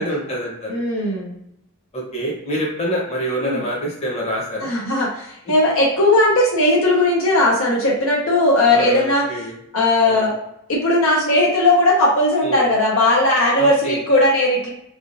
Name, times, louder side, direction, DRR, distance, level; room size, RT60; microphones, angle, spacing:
voice 1, 0.0-0.8 1.9-4.7 8.7-9.6 10.0-10.3 12.4-12.6 13.6-14.0, equal, 30° left, -3 dB, 1.0 m, -26 dB
voice 2, 0.7-1.3 3.4-3.6 4.6-9.3 9.7-10.4 10.7-14.7, left 1 dB, 65° left, -2 dB, 0.8 m, -17 dB
3.5 x 2.3 x 2.6 m, 0.78 s
head